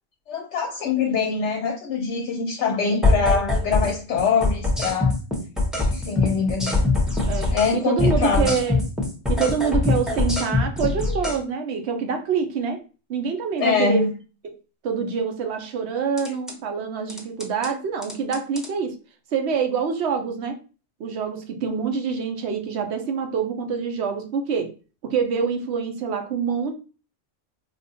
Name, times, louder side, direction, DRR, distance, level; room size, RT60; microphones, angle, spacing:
voice 1, 0.3-5.1 5.9-6.8 7.5-8.5 13.6-14.1, left 5 dB, 70° left, 3 dB, 0.8 m, -24 dB
sound 1, 3.0-3.9 4.2-7.7 8.0-11.4 16.2-16.5 17.1-17.7 18.0-18.7, left 2 dB, ahead, 0.6 m, -22 dB
voice 2, 7.3-8.8 9.3-12.8 13.1-14.1 14.4-14.6 14.8-18.9 19.3-20.6 21.0-24.7 25.0-26.7, right 6 dB, 65° right, 6 dB, 0.9 m, -26 dB
4.3 x 2.4 x 2.7 m, 0.34 s
omnidirectional pair, 1.3 m